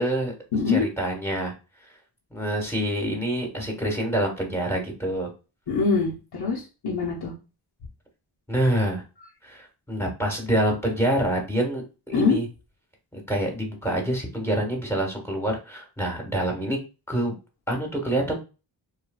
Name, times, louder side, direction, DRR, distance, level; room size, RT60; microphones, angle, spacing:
voice 1, 0.0-0.3 0.7-1.5 2.3-5.3 8.5-9.0 9.4-12.5 13.1-16.8 17.1-17.3 17.7-18.4, right 1 dB, 5° left, 0 dB, 1.3 m, -26 dB
voice 2, 0.5-0.8 5.7-7.3 12.1-12.4, left 4 dB, 55° left, -5 dB, 0.9 m, -24 dB
3.2 x 2.2 x 2.2 m, 0.31 s
cardioid pair, 45°, 50 cm